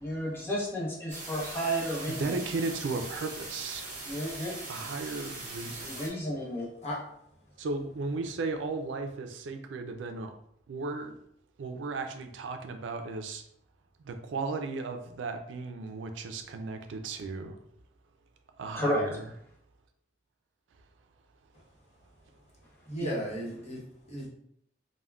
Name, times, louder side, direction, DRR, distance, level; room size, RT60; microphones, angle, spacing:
voice 1, 0.0-2.4 4.1-4.5 5.8-6.7 18.7-19.0 23.0-23.1, equal, 15° left, -5 dB, 0.8 m, -32 dB
sound 1, 1.1-6.1, right 2 dB, 45° right, 0.7 m, -41 dB
voice 2, 2.1-4.0 4.7-5.9 7.6-10.3 10.7-11.2 11.6-13.4 14.0-17.6 18.6-19.3, right 3 dB, 85° right, 6 dB, 0.4 m, -35 dB
voice 3, 22.8-24.3, equal, 35° left, -5 dB, 0.9 m, -36 dB
3.5 x 2.1 x 2.2 m, 0.70 s
head